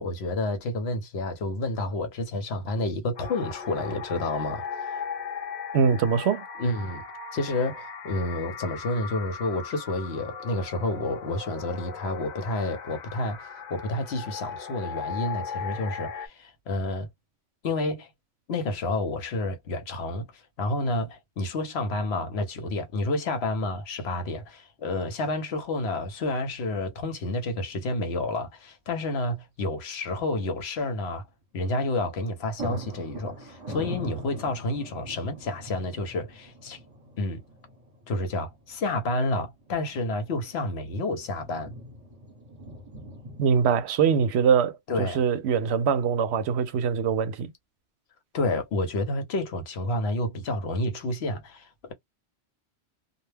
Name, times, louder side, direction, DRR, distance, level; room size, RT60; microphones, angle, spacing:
voice 1, 0.0-4.6 4.9-5.0 6.6-7.0 7.3-17.1 17.6-18.1 18.5-31.3 31.5-36.8 37.2-37.4 38.1-41.7 44.9-45.2 48.3-51.9, left 2 dB, 70° left, 0.9 m, -30 dB
sound 1, 3.2-16.3, left 6 dB, 50° left, 0.7 m, -38 dB
voice 2, 5.7-6.4 43.4-47.5, right 6 dB, 75° right, 0.8 m, -23 dB
sound 2, 27.7-27.8 28.0-28.1 31.8-32.0 32.3-43.6, right 1 dB, 35° right, 1.1 m, -43 dB
2.3 x 2.1 x 3.2 m
omnidirectional pair, 1.2 m